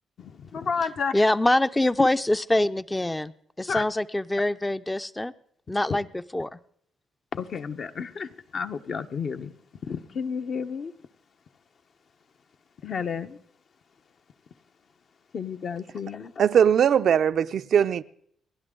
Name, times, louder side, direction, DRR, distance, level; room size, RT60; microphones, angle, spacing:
voice 1, 0.2-1.1 3.7-3.8 7.3-9.5 9.9-10.9 12.8-13.4 15.3-16.3, left 6 dB, 55° left, 1.0 m, -31 dB
voice 2, 1.1-3.3 3.6-5.3 5.7-6.6, left 1 dB, 10° left, 0.6 m, -24 dB
voice 3, 16.4-18.0, right 8 dB, 60° right, 0.5 m, -20 dB
29.5 x 11.0 x 3.8 m
cardioid pair, 90°, 0 cm